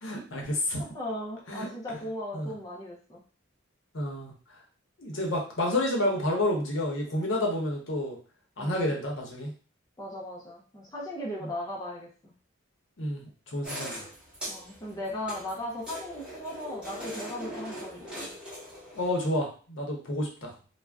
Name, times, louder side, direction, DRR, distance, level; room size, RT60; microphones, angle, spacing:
voice 1, 0.0-0.8 1.5-1.7 2.3-2.5 3.9-4.3 5.0-8.2 8.6-9.5 11.4-11.5 13.0-14.0 18.9-20.5, left 1 dB, 65° left, 0 dB, 0.8 m, -30 dB
voice 2, 0.8-3.2 8.6-8.9 10.0-12.3 14.5-18.3, left 1 dB, 20° left, -3 dB, 0.5 m, -37 dB
sound 1, 13.6-19.1, equal, 5° right, 0.9 m, -41 dB
2.4 x 2.1 x 3.3 m, 0.39 s
head